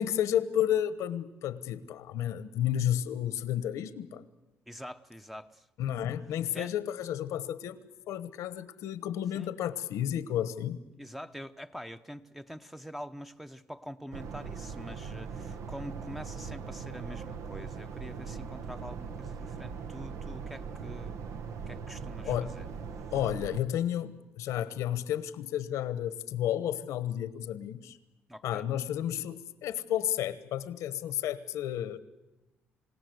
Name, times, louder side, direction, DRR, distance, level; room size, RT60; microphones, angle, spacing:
voice 1, 0.0-4.2 5.8-7.8 8.1-10.8 22.2-22.5 23.1-28.0 28.4-32.0, left 11 dB, 90° left, 1.2 m, -32 dB
voice 2, 4.7-5.7 6.5-6.7 9.3-9.5 10.9-21.3 21.7-22.7 28.3-28.7, equal, 5° right, 0.8 m, -45 dB
sound 1, 14.1-23.6, right 6 dB, 75° right, 1.1 m, -40 dB
28.5 x 17.0 x 8.0 m
cardioid pair, 110°, 5 cm